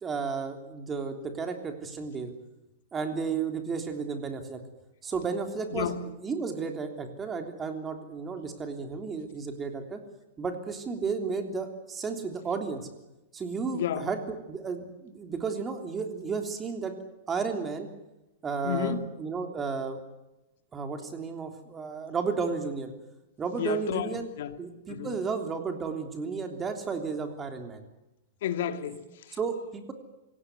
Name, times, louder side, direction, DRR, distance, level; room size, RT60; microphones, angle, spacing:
voice 1, 0.0-2.3 2.9-4.6 5.0-5.9 6.2-10.0 10.4-12.8 13.3-14.2 14.5-16.9 17.3-17.9 18.4-20.0 20.7-22.9 23.4-24.3 24.6-27.8 29.4-29.9, right 5 dB, 15° right, 3.3 m, -33 dB
voice 2, 5.7-6.0 13.7-14.1 18.6-19.1 23.6-24.6 24.9-25.2 28.4-29.4, left 9 dB, 65° left, 2.1 m, -32 dB
26.0 x 17.5 x 9.9 m
supercardioid pair, 155°, 0 cm